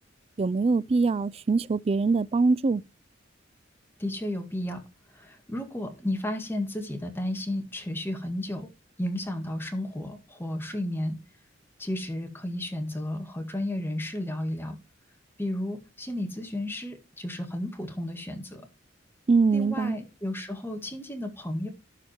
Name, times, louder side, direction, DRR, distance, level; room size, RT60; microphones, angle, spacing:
voice 1, 0.4-2.8 19.3-20.0, right 4 dB, 30° right, 0.4 m, -23 dB
voice 2, 4.0-4.8 5.1-8.7 9.0-11.2 11.8-14.8 15.4-18.6 19.5-21.7, left 1 dB, 10° left, 1.9 m, -33 dB
12.0 x 5.0 x 4.5 m
head